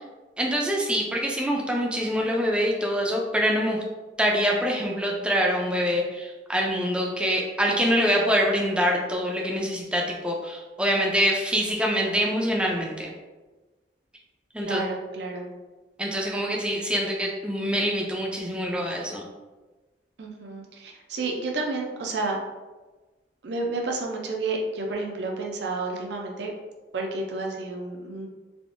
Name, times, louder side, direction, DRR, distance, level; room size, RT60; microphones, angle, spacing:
voice 1, 0.4-3.8 4.2-13.1 14.5-14.8 16.0-19.2, equal, 5° right, -1 dB, 0.4 m, -25 dB
voice 2, 14.6-15.5 16.4-16.6 20.2-22.4 23.4-26.5 26.9-28.3, right 3 dB, 65° right, 1 dB, 0.5 m, -31 dB
3.5 x 2.5 x 2.5 m, 1.2 s
head